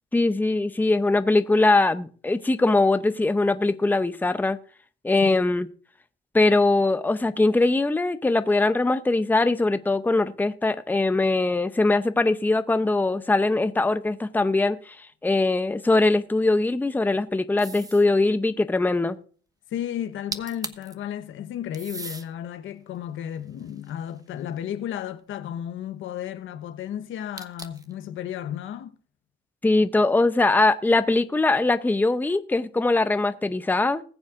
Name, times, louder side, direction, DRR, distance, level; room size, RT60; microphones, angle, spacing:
voice 1, 0.1-4.6 5.0-5.7 6.3-19.2 29.6-34.0, left 2 dB, 10° left, 0.7 m, -21 dB
sound 1, 17.6-18.1 20.0-20.1 20.3-20.9 21.7-22.3 22.9-24.4 27.4-27.9, right 3 dB, 20° right, 1.0 m, -38 dB
voice 2, 19.7-29.0, left 10 dB, 80° left, 1.0 m, -33 dB
20.5 x 7.2 x 2.5 m
cardioid pair, 90°, 20 cm